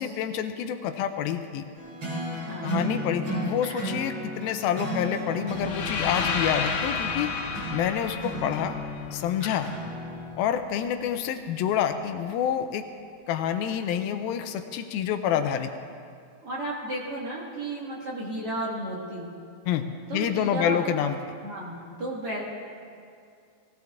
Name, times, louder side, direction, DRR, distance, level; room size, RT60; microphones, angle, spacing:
voice 1, 0.0-1.7 2.6-7.4 7.7-8.8 9.1-9.7 10.4-12.8 13.3-15.7 19.7-21.2, left 9 dB, 85° left, 8 dB, 2.3 m, -28 dB
sound 1, 1.8-10.3, right 1 dB, 30° right, 4.5 m, -34 dB
voice 2, 2.5-3.0 16.4-19.3 20.1-20.8 21.4-22.4, right 1 dB, 50° right, -5 dB, 2.1 m, -33 dB
sound 2, 5.5-9.6, left 5 dB, 65° left, 2.9 m, -31 dB
18.5 x 16.0 x 3.5 m, 2.4 s
omnidirectional pair, 4.4 m